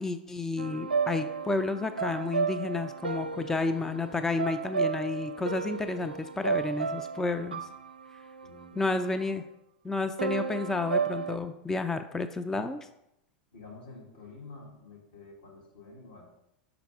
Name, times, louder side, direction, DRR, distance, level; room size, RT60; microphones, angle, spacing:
voice 1, 0.0-7.6 8.8-9.4 9.8-12.9, left 3 dB, 10° left, 8 dB, 0.4 m, -31 dB
sound 1, 0.6-9.4 10.2-11.4, right 5 dB, 90° right, 0.4 m, -33 dB
voice 2, 8.4-8.8 13.5-16.2, left 3 dB, 75° left, -3 dB, 2.0 m, -49 dB
5.8 x 4.9 x 3.5 m, 0.83 s
hypercardioid pair, 90°, 5 cm